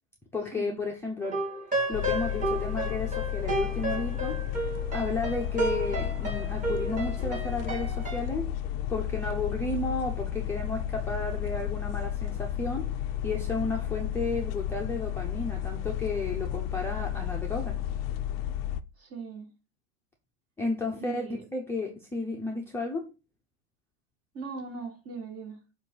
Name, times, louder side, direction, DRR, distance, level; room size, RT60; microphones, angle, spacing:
voice 1, 0.3-1.4 1.9-4.3 4.9-8.5 8.9-12.9 13.2-17.8 20.6-23.1, left 3 dB, 5° left, 0.7 m, -33 dB
sound 1, 1.2-8.2, right 2 dB, 20° right, 2.0 m, -32 dB
sound 2, 1.9-18.8, left 11 dB, 45° left, 0.5 m, -32 dB
voice 2, 19.0-19.5 20.9-21.4 24.3-25.6, right 5 dB, 35° right, 2.4 m, -39 dB
7.2 x 2.6 x 5.4 m
supercardioid pair, 135°, 41 cm